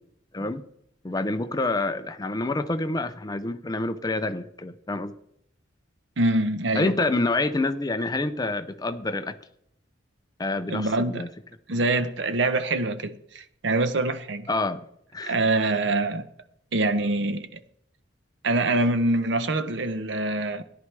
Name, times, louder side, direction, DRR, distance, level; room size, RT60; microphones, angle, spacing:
voice 1, 0.3-0.6 1.0-5.1 6.8-9.4 10.4-11.3 14.5-14.9 15.1-15.4, left 2 dB, 20° left, 0.5 m, -27 dB
voice 2, 6.2-7.0 10.7-11.2 11.7-14.5 15.3-16.3 16.7-17.6 18.4-20.6, right 2 dB, 65° right, 0.8 m, -25 dB
14.0 x 11.0 x 3.3 m
head